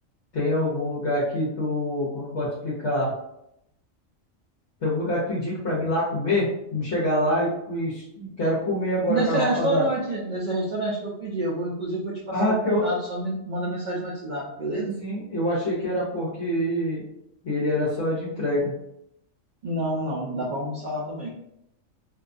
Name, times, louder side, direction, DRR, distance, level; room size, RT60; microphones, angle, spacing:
voice 1, 0.3-3.1 4.8-9.9 12.3-12.9 14.8-17.0 17.4-18.7, left 1 dB, 65° left, -7 dB, 1.0 m, -25 dB
voice 2, 9.1-15.0 19.6-21.3, right 1 dB, 75° right, -5 dB, 0.4 m, -28 dB
2.7 x 2.2 x 2.5 m, 0.79 s
omnidirectional pair, 1.4 m